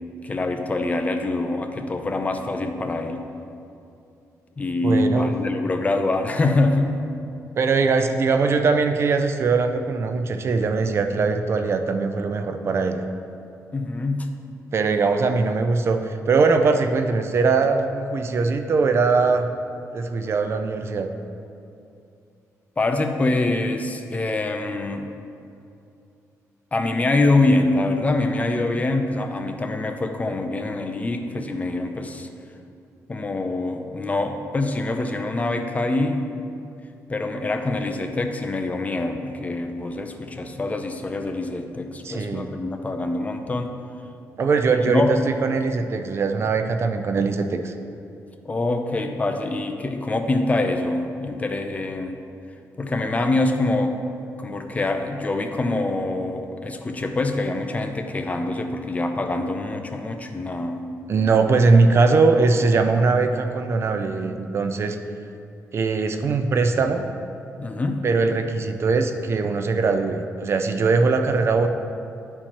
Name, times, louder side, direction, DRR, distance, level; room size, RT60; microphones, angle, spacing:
voice 1, 0.2-3.2 4.6-6.9 13.7-14.3 22.8-25.1 26.7-32.3 33.1-36.2 37.1-43.7 44.9-45.1 48.4-52.1 52.8-54.0 54.4-60.8 67.6-68.0, left 2 dB, 25° left, 5 dB, 0.5 m, -24 dB
voice 2, 4.8-5.3 7.6-13.0 14.7-19.5 19.9-21.1 42.0-42.5 44.4-47.7 61.1-65.0 65.7-67.1 68.0-71.7, right 4 dB, 45° right, 7 dB, 0.4 m, -21 dB
11.0 x 4.4 x 3.0 m, 2.6 s
cardioid pair, 105°, 6 cm